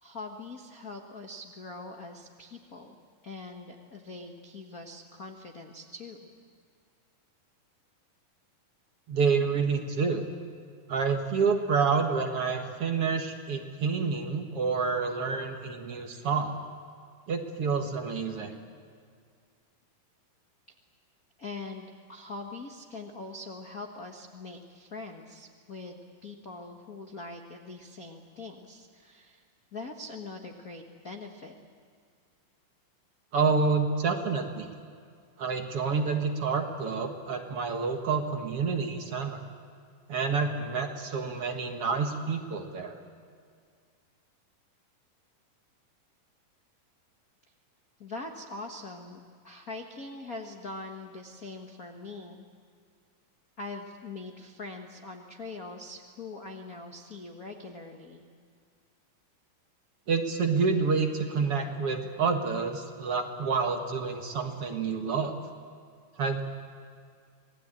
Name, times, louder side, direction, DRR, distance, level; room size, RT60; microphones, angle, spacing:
voice 1, 0.0-3.0 3.2-6.2 16.1-16.3 21.4-29.4 29.7-31.5 48.0-52.4 53.6-58.2, left 3 dB, 70° left, 3 dB, 0.8 m, -42 dB
voice 2, 9.1-10.2 10.9-16.5 17.3-18.6 33.3-34.7 35.4-39.4 40.1-43.0 60.1-65.3 66.2-66.4, right 5 dB, 50° right, 4 dB, 2.0 m, -28 dB
27.0 x 20.0 x 8.9 m, 2.1 s
omnidirectional pair, 4.0 m